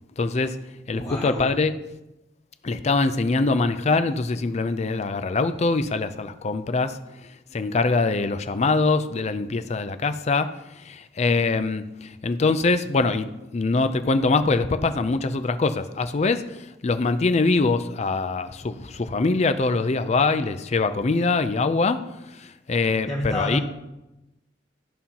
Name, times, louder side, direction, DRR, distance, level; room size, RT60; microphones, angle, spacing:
voice 1, 0.2-0.6 0.9-1.8 2.6-7.0 7.5-22.0 22.3-23.6, left 3 dB, 40° left, 10 dB, 0.5 m, -23 dB
voice 2, 0.9-1.5 23.1-23.6, left 1 dB, 20° left, -5 dB, 1.0 m, -29 dB
13.5 x 5.5 x 2.9 m, 0.97 s
head